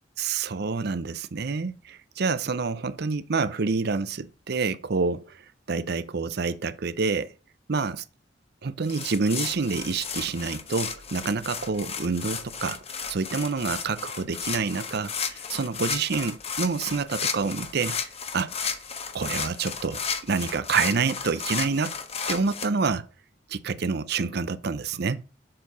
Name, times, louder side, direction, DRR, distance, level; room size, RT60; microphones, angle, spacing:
voice 1, 0.2-5.4 5.7-7.3 7.7-8.0 8.6-12.8 13.1-18.0 18.3-18.5 19.1-21.9 22.3-23.1 23.5-25.2, right 4 dB, 60° right, 0.6 m, -27 dB
sound 1, 8.9-22.7, left 6 dB, 35° left, 1.0 m, -33 dB
7.5 x 4.6 x 6.8 m
head